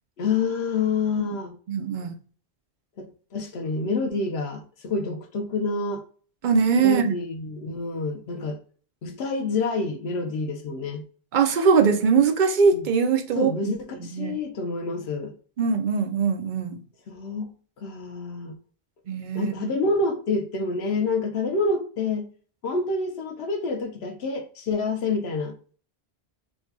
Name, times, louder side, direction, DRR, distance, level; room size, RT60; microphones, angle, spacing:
voice 1, 0.2-1.6 3.0-3.1 3.3-6.0 6.8-8.6 9.0-11.0 12.7-12.9 13.3-15.3 17.1-17.5 17.8-18.6 19.3-22.3 22.6-25.5, left 3 dB, 85° left, 1.0 m, -27 dB
voice 2, 1.7-2.1 6.4-7.1 11.3-14.4 15.6-16.8 19.1-19.7, right 5 dB, 55° right, 0.6 m, -22 dB
4.6 x 2.2 x 2.7 m
omnidirectional pair, 1.0 m